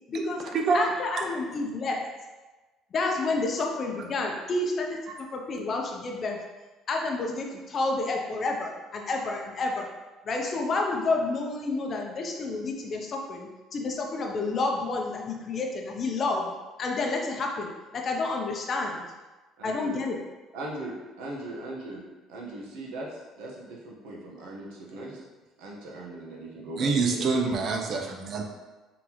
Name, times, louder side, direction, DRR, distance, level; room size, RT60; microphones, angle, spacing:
voice 1, 0.1-0.4 0.7-2.0 2.9-5.0 5.3-6.4 6.9-9.9 10.2-16.5 16.8-19.0 19.6-20.2, left 3 dB, 35° left, 1 dB, 0.6 m, -29 dB
voice 2, 19.6-20.0 20.5-22.0 22.3-25.2 25.6-27.3, right 2 dB, 90° right, -3 dB, 1.1 m, -39 dB
voice 3, 26.8-28.4, right 4 dB, 45° right, 2 dB, 0.6 m, -25 dB
3.9 x 3.8 x 3.0 m, 1.2 s
cardioid pair, 140°, 0 cm